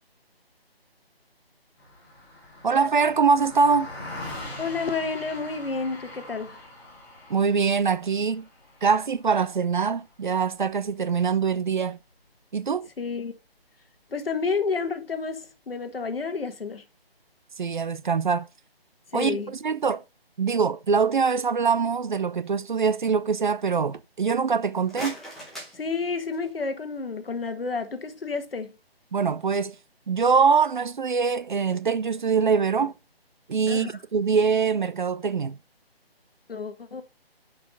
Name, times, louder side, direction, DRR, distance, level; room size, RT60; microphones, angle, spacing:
Car passing by, 1.8-11.4, left 1 dB, 20° left, 3.1 m, -43 dB
voice 1, 2.6-3.9 7.3-8.5 8.8-12.0 12.5-12.9 17.6-18.5 19.1-20.0 20.4-25.2 29.1-29.8 30.1-32.9 33.5-35.6, right 5 dB, 50° right, 0.6 m, -23 dB
voice 2, 4.6-6.6 13.0-13.3 14.1-16.8 19.1-19.5 25.7-28.7 33.7-33.9 36.5-37.0, left 4 dB, 65° left, 1.6 m, -30 dB
sound 1, 24.7-26.7, equal, ahead, 0.9 m, -41 dB
6.6 x 5.4 x 5.4 m
figure-of-eight pair, 155°, 31 cm